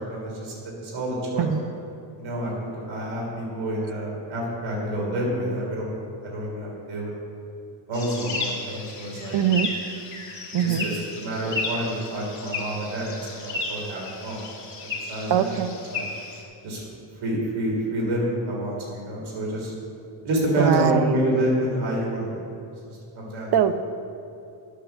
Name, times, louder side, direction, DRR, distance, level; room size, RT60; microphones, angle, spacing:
voice 1, 0.0-1.5 2.2-5.9 6.2-7.1 7.9-9.3 10.6-15.5 15.9-16.0 16.6-16.8 17.2-19.7 20.2-22.4 22.9-23.5, right 1 dB, 75° right, -3 dB, 3.3 m, -28 dB
sound 1, 7.9-16.4, left 3 dB, 35° left, 2.5 m, -34 dB
voice 2, 9.3-9.7 10.5-10.9 15.3-15.7 20.6-21.2 23.5-23.7, right 9 dB, 55° right, 11 dB, 0.7 m, -21 dB
10.0 x 8.4 x 6.9 m, 2.6 s
cardioid pair, 120°, 48 cm